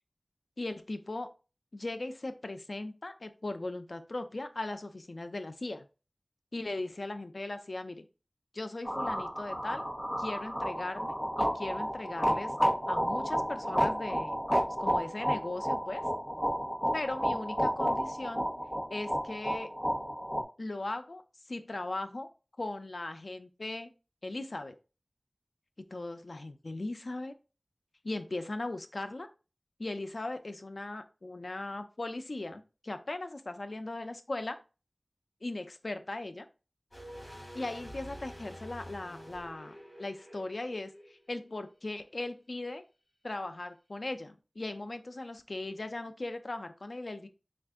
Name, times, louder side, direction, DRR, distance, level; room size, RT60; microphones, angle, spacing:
voice 1, 0.6-1.3 1.7-5.9 6.5-8.1 8.5-9.8 10.2-12.5 12.9-14.4 14.8-16.0 16.9-18.5 18.9-19.7 20.6-21.2 21.5-22.3 22.6-23.9 24.2-24.8 25.8-27.3 28.0-29.3 29.8-34.6 35.4-36.5 37.5-39.7 40.0-40.9 41.3-42.8 43.2-47.3, left 2 dB, 85° left, 8 dB, 0.5 m, -38 dB
sound 1, 8.8-20.4, equal, 10° left, 1.1 m, -31 dB
sound 2, 36.9-41.8 42.0-42.1, equal, 40° left, 2.4 m, -48 dB
4.4 x 2.5 x 3.5 m, 0.32 s
wide cardioid pair, 40°, 0 cm